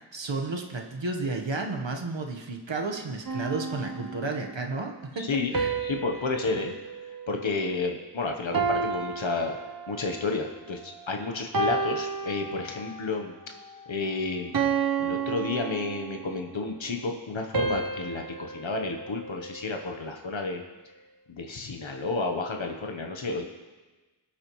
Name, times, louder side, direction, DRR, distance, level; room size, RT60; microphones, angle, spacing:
voice 1, 0.1-5.7, right 3 dB, 70° right, 2 dB, 1.3 m, -32 dB
sound 1, 3.3-4.6 5.5-8.1 8.5-10.3 10.8-11.1 11.5-13.1 13.6-13.8 14.5-16.4 17.5-19.9, right 5 dB, 45° right, 0.9 m, -32 dB
voice 2, 5.2-6.7 7.0-9.6 9.9-13.3 13.9-14.5 15.0-20.6 21.3-23.5, left 3 dB, 75° left, 3 dB, 1.1 m, -31 dB
22.0 x 8.7 x 3.1 m, 1.3 s
wide cardioid pair, 50°, 46 cm